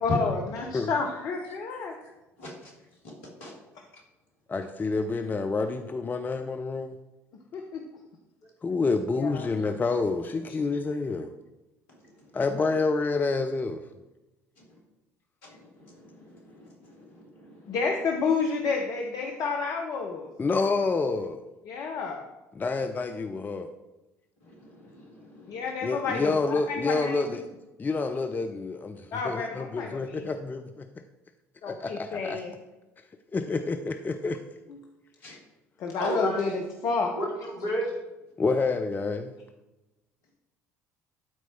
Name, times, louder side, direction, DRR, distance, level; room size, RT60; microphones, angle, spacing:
voice 1, 0.0-1.9 7.5-7.8 9.2-9.5 17.7-20.3 21.7-22.2 25.5-27.2 29.1-30.3 31.6-32.5 35.8-37.1, left 4 dB, 50° left, 2 dB, 0.9 m, -30 dB
voice 2, 1.4-2.1 2.4-2.7 3.4-3.5 12.0-12.3 15.4-17.8 24.4-25.7 35.2-35.4 36.0-36.4 37.1-37.9, equal, 65° left, -1 dB, 2.6 m, -36 dB
voice 3, 4.5-7.0 8.6-11.3 12.3-13.8 20.4-21.4 22.6-23.7 25.8-27.5 27.8-30.9 32.0-32.4 33.3-34.4 38.4-39.3, left 3 dB, 20° left, 7 dB, 0.6 m, -28 dB
12.0 x 4.6 x 4.4 m, 1.0 s
figure-of-eight pair, 55°, 8 cm